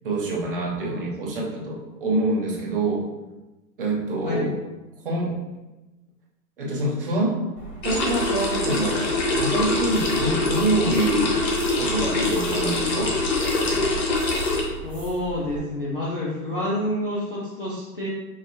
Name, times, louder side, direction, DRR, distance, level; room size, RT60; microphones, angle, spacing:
voice 1, 0.0-3.1 3.8-4.6 5.0-5.4 6.6-7.4 7.8-9.0 9.3-11.4 11.8-13.2, right 2 dB, 35° right, -3 dB, 0.5 m, -25 dB
sound 1, 7.5-15.6, right 3 dB, 5° left, 0.9 m, -39 dB
sound 2, 7.8-14.6, left 2 dB, 90° left, 1.1 m, -24 dB
voice 2, 14.8-18.1, left 1 dB, 35° left, -7 dB, 0.4 m, -28 dB
4.7 x 2.5 x 2.7 m, 1.1 s
hypercardioid pair, 170°, 50 cm